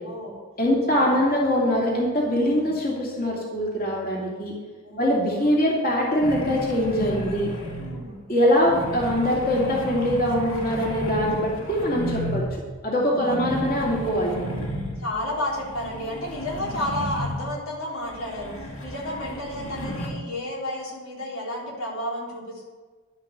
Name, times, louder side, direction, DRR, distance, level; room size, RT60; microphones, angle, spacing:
voice 1, 0.0-0.4 0.9-1.4 2.4-2.8 4.8-5.5 7.8-8.2 13.0-13.8 15.0-22.6, left 1 dB, 85° left, -3 dB, 3.5 m, -32 dB
voice 2, 0.6-4.5 5.0-7.5 8.3-12.4 12.8-14.6, equal, 45° left, -4 dB, 2.6 m, -23 dB
sound 1, 6.2-8.1 8.5-12.6 13.0-17.6 18.0-20.1, equal, 65° left, 2.3 m, -33 dB
11.0 x 8.1 x 6.7 m, 1.4 s
head